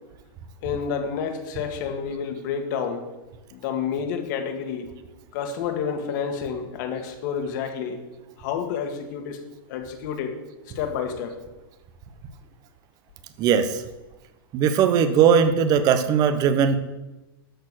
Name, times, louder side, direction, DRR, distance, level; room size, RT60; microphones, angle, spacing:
voice 1, 0.6-3.0 3.5-4.9 5.3-8.0 8.4-9.4 9.7-10.4 10.7-11.4, left 7 dB, 55° left, 5 dB, 1.8 m, -29 dB
voice 2, 13.4-13.8 14.5-16.8, right 7 dB, 30° right, 10 dB, 0.8 m, -19 dB
13.0 x 4.5 x 6.3 m, 1.1 s
hypercardioid pair, 140°, 12 cm